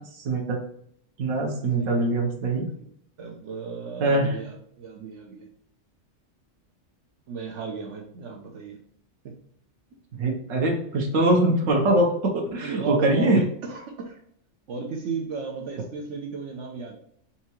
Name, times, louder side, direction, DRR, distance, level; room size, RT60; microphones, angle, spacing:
voice 1, 0.2-0.6 1.2-2.7 4.0-4.3 10.2-13.4, right 2 dB, 90° right, 0 dB, 1.2 m, -23 dB
voice 2, 1.8-2.1 2.6-2.9 3.2-5.5 7.3-8.8 9.2-9.3 12.6-14.2 14.7-16.9, right 5 dB, 75° right, 2 dB, 1.0 m, -35 dB
4.3 x 3.6 x 2.9 m, 0.66 s
omnidirectional pair, 1.3 m